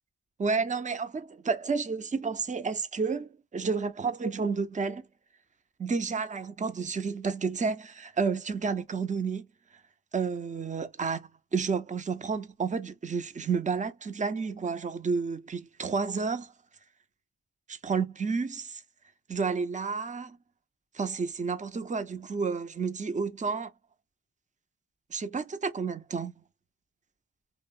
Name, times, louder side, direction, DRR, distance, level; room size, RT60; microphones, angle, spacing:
voice 1, 0.4-5.0 5.8-9.5 10.1-16.5 17.7-18.8 19.3-20.4 20.9-23.7 25.1-26.3, right 5 dB, 20° right, 0.4 m, -31 dB
2.9 x 2.0 x 2.4 m
wide cardioid pair, 70°, 40 cm